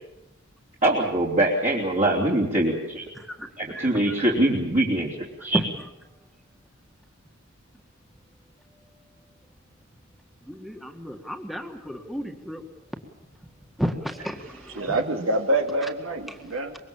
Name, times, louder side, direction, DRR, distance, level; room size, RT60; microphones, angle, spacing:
voice 1, 0.8-3.1 3.6-5.1 5.4-5.6, right 1 dB, 40° right, -5 dB, 3.4 m, -23 dB
voice 2, 3.1-3.9 5.5-5.6 10.5-12.6 13.8-15.0 16.3-16.6, equal, ahead, 4 dB, 1.9 m, -32 dB
voice 3, 14.8-16.8, right 1 dB, 75° right, 4 dB, 2.4 m, -26 dB
25.0 x 22.5 x 7.4 m, 1.0 s
head